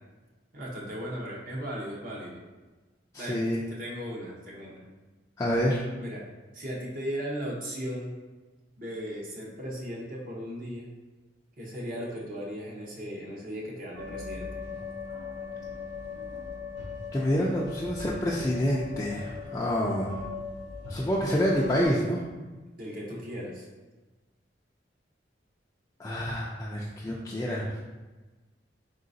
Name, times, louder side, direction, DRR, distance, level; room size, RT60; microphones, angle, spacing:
voice 1, 0.5-2.4 3.2-4.8 6.0-6.2 6.5-8.1 8.8-10.9 11.6-14.5 22.8-23.7, equal, 50° right, -3 dB, 0.8 m, -37 dB
voice 2, 3.1-3.6 5.4-5.8 17.1-20.2 20.9-22.2 26.0-27.8, equal, 15° left, -5 dB, 0.3 m, -27 dB
sound 1, 14.0-21.9, left 4 dB, 85° right, 0.8 m, -39 dB
4.0 x 3.8 x 2.6 m, 1.2 s
head